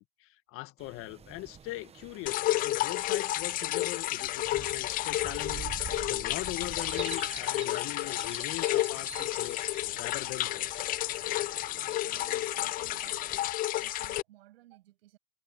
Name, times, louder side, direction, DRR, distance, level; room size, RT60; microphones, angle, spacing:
voice 1, 0.0-9.6 9.9-10.9 12.3-12.4 12.8-12.9, left 19 dB, 45° left, 1.6 m, -41 dB
sound 1, 0.8-13.5, right 7 dB, 20° right, 1.0 m, -47 dB
sound 2, 2.3-14.2, left 15 dB, 30° left, 0.4 m, -31 dB
voice 2, 11.3-13.2 13.8-15.2, right 15 dB, 75° right, 7.6 m, -58 dB
hypercardioid pair, 110°, 31 cm